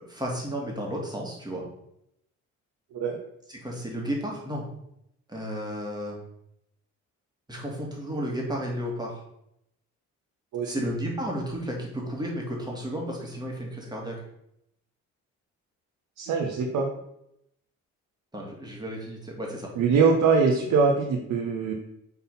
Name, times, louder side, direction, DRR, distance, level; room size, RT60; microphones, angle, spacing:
voice 1, 0.0-1.6 3.5-4.7 5.3-6.2 7.5-9.2 10.6-14.2 18.3-19.7, equal, 15° right, -2 dB, 2.3 m, -33 dB
voice 2, 16.2-16.9 19.8-21.7, right 5 dB, 85° right, 0 dB, 1.0 m, -23 dB
5.8 x 4.0 x 5.5 m, 0.78 s
cardioid pair, 90°, 30 cm